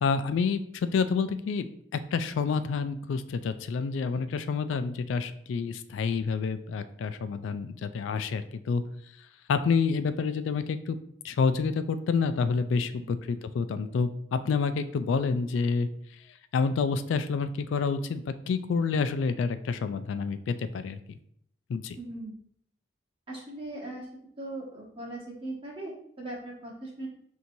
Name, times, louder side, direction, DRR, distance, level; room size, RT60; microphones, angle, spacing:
voice 1, 0.0-1.7 1.9-8.8 9.5-11.0 11.2-15.9 16.5-21.2 21.7-22.0, left 5 dB, 85° left, 11 dB, 0.3 m, -28 dB
voice 2, 22.0-22.3 23.3-24.0 24.4-27.1, right 2 dB, 30° right, -4 dB, 1.1 m, -39 dB
5.9 x 2.7 x 2.6 m, 0.67 s
head